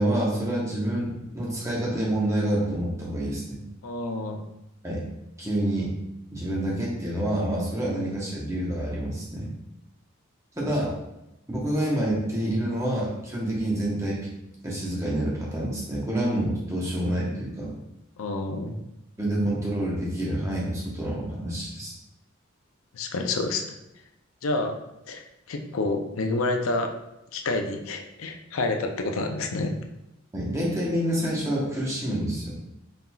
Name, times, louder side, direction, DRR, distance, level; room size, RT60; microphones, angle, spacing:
voice 1, 0.0-3.6 4.8-5.0 5.4-5.9 6.3-9.5 10.5-10.9 11.5-14.3 14.6-17.7 19.2-21.9 30.3-32.6, right 1 dB, 15° right, -5 dB, 1.0 m, -27 dB
voice 2, 3.8-4.4 18.2-18.7 22.9-23.6 24.4-24.8 25.1-26.9 27.3-29.7, left 2 dB, 85° left, 4 dB, 0.5 m, -28 dB
4.3 x 3.8 x 2.3 m, 0.89 s
head